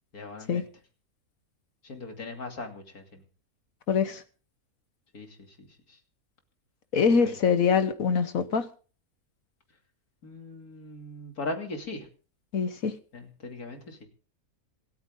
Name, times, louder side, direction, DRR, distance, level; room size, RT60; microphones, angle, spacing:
voice 1, 0.1-0.6 1.8-3.2 5.1-5.3 5.6-5.7 7.1-7.3 10.2-12.1 13.1-14.1, left 2 dB, 90° left, 3.2 m, -39 dB
voice 2, 3.9-4.2 6.9-8.7 12.5-12.9, left 6 dB, 70° left, 1.5 m, -24 dB
26.5 x 9.3 x 3.7 m
omnidirectional pair, 1.5 m